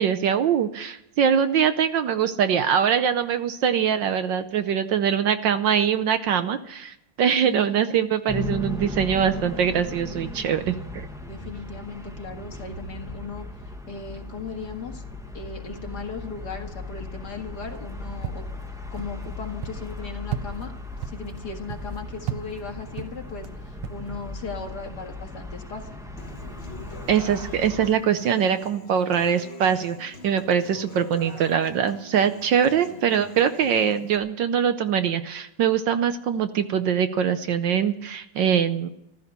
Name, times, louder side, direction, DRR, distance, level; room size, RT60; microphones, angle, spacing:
voice 1, 0.0-11.1 27.1-38.9, right 8 dB, 65° right, 10 dB, 1.3 m, -23 dB
voice 2, 7.4-7.7 10.5-10.9 11.3-13.5 13.9-15.0 15.3-18.4 18.9-20.7 21.0-26.0 30.7-31.1 32.8-33.1, left 4 dB, 50° left, 2 dB, 2.4 m, -37 dB
sound 1, 8.3-27.9, left 2 dB, ahead, 0.8 m, -37 dB
sound 2, 17.7-24.4, right 11 dB, 85° right, 1.7 m, -38 dB
Human voice / Acoustic guitar, 26.2-34.2, left 3 dB, 30° left, 1.8 m, -44 dB
14.5 x 13.5 x 6.7 m, 0.81 s
omnidirectional pair, 2.3 m